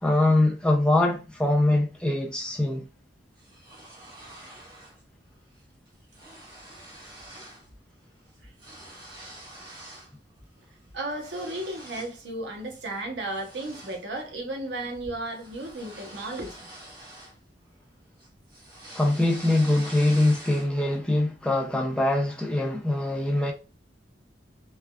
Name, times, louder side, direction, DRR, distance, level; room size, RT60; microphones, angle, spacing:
voice 1, 0.0-2.9 18.9-23.5, left 1 dB, 5° left, 0.3 m, -23 dB
sound 1, 3.4-5.0 5.3-5.6 5.9-7.7 8.0-10.1 10.6-12.2 12.6-12.9 13.3-17.9 18.2-20.9, right 1 dB, 25° right, 1.2 m, -46 dB
voice 2, 10.9-16.7, right 1 dB, 65° right, 0.8 m, -34 dB
3.3 x 2.3 x 2.2 m
head